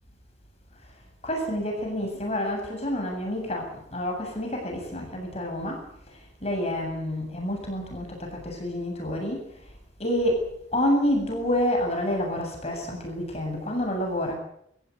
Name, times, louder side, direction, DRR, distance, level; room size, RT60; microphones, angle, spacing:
voice 1, 1.2-9.6 10.0-14.4, left 1 dB, 30° left, 2 dB, 7.7 m, -28 dB
27.5 x 16.5 x 8.3 m, 0.72 s
head